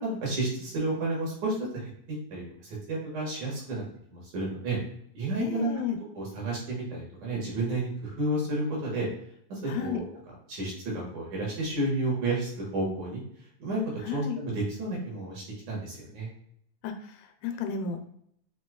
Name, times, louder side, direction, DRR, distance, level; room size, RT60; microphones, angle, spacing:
voice 1, 0.0-3.8 4.1-4.8 5.1-5.7 6.2-9.1 9.5-10.0 10.5-13.2 13.6-13.8 14.1-16.3, right 2 dB, 65° right, -4 dB, 2.3 m, -31 dB
voice 2, 5.4-6.0 9.7-10.0 14.0-14.4 16.8-18.0, left 7 dB, 85° left, 5 dB, 2.4 m, -33 dB
6.2 x 2.7 x 2.3 m, 0.70 s
omnidirectional pair, 4.2 m